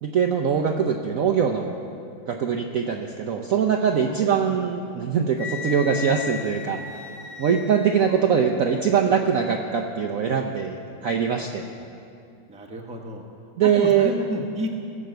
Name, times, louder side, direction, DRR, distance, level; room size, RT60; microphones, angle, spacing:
voice 1, 0.0-1.7 2.3-6.8 7.4-11.6 13.6-14.1, right 7 dB, 65° right, 3 dB, 0.8 m, -22 dB
voice 2, 3.9-4.2 12.5-13.2 13.6-14.7, equal, 5° right, 1 dB, 0.7 m, -32 dB
Wind instrument woodwind instrument, 5.4-8.2, left 6 dB, 70° left, 1.3 m, -35 dB
17.5 x 6.4 x 7.9 m, 2.5 s
omnidirectional pair, 2.1 m